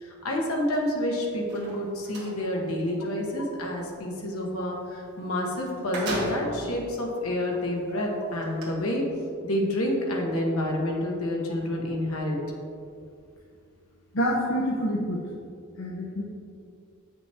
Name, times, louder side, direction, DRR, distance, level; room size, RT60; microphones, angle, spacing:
voice 1, 0.0-4.8 5.2-9.0 9.4-12.6, left 1 dB, 85° left, -1 dB, 1.3 m, -28 dB
sound 1, 1.4-2.3 5.2-5.3 5.6-6.7 7.4-7.5 8.4-8.6, right 1 dB, 55° right, 1.8 m, -33 dB
voice 2, 14.1-15.2 15.8-16.2, equal, 65° left, -4 dB, 0.9 m, -27 dB
8.2 x 5.8 x 3.5 m, 2.3 s
head